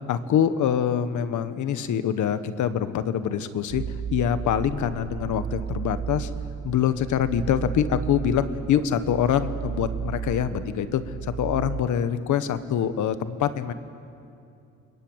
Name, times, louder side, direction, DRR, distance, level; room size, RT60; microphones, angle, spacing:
voice 1, 0.1-3.8 4.1-6.3 6.6-13.7, left 9 dB, 75° left, 11 dB, 1.5 m, -25 dB
sound 1, 3.7-11.8, right 8 dB, 55° right, 1.1 m, -33 dB
30.0 x 21.5 x 9.0 m, 2.5 s
cardioid pair, 90°, 30 cm